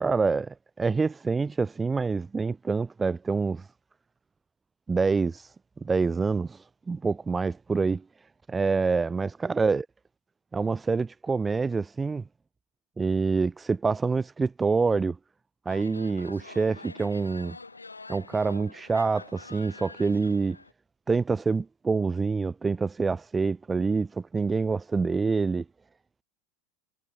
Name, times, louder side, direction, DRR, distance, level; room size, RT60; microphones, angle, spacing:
voice 1, 0.0-3.7 4.9-5.5 5.8-8.0 8.5-9.8 10.5-12.2 13.0-15.2 15.7-17.6 18.1-20.6 21.1-25.6, right 4 dB, 15° right, 0.4 m, -26 dB
sound 1, 15.7-20.7, left 3 dB, 90° left, 0.7 m, -46 dB
figure-of-eight pair, 80°, 0 cm